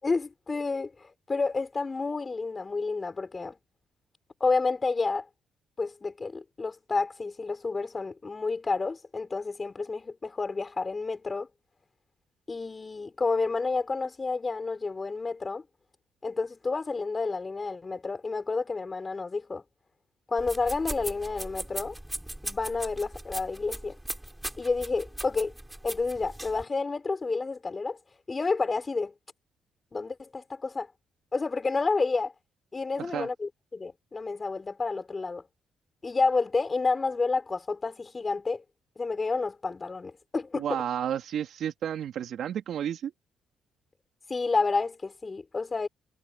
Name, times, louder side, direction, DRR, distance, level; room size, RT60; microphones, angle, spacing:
voice 1, 0.0-3.6 4.4-5.3 5.8-11.5 12.5-15.6 16.2-19.6 20.3-22.0 22.4-24.0 24.6-25.5 25.8-28.0 28.3-29.1 29.9-30.9 31.3-32.3 32.7-35.5 36.0-38.6 39.0-40.8 44.3-45.9, left 4 dB, 30° left, 6.0 m, -30 dB
sound 1, 20.4-26.6, right 1 dB, 5° right, 5.8 m, -39 dB
voice 2, 40.5-43.1, right 9 dB, 70° right, 3.7 m, -31 dB
cardioid pair, 90°, 0 cm